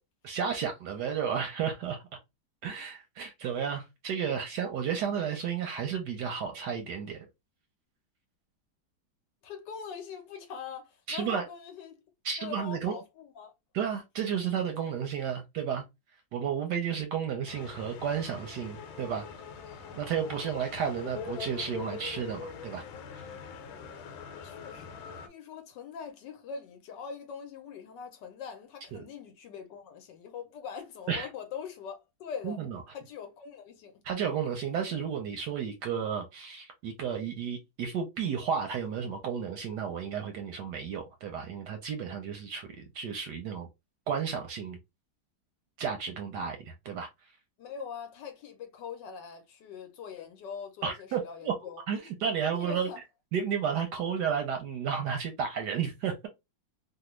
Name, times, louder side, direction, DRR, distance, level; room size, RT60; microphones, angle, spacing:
voice 1, 0.2-2.0 2.6-7.3 11.1-11.4 12.2-13.0 13.7-15.8 16.3-19.3 20.0-22.8 23.1-23.2 28.9-29.0 31.1-31.3 32.4-32.8 34.0-43.7 44.1-44.8 45.8-47.1 50.8-51.6 51.9-52.9 53.3-56.3, right 7 dB, 70° right, 1.0 m, -32 dB
voice 2, 9.4-12.0 12.4-13.5 24.4-32.6 32.9-33.9 47.6-51.8 52.5-53.0, left 6 dB, 70° left, 1.2 m, -42 dB
sound 1, 17.5-25.3, left 6 dB, 90° left, 1.4 m, -43 dB
3.3 x 2.3 x 3.0 m
omnidirectional pair, 2.1 m